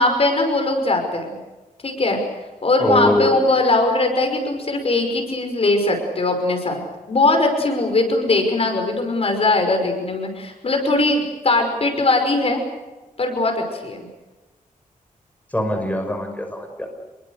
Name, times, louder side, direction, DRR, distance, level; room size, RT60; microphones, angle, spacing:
voice 1, 0.0-1.4 1.8-2.2 2.6-6.8 7.1-12.6 13.2-14.1, left 2 dB, 45° left, 4 dB, 5.6 m, -20 dB
voice 2, 2.8-3.4 15.5-16.9, left 1 dB, 10° left, 3 dB, 6.1 m, -22 dB
28.5 x 23.0 x 6.7 m, 1.1 s
wide cardioid pair, 125°, 14 cm